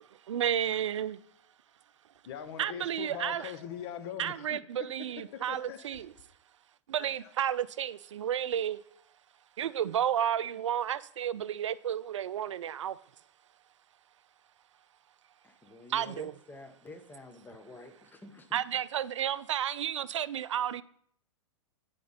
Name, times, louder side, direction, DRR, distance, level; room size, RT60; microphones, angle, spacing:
voice 1, 0.3-1.2 2.6-3.5 4.2-6.1 6.9-8.8 9.6-13.0 15.9-16.4 18.5-20.8, right 10 dB, 75° right, 0.4 m, -32 dB
voice 2, 2.3-4.6 5.3-6.0 7.0-7.3, left 9 dB, 55° left, 0.9 m, -42 dB
voice 3, 15.7-17.9 18.2-18.4, left 2 dB, 10° left, 1.0 m, -48 dB
9.3 x 5.1 x 4.1 m
hypercardioid pair, 105°, 15 cm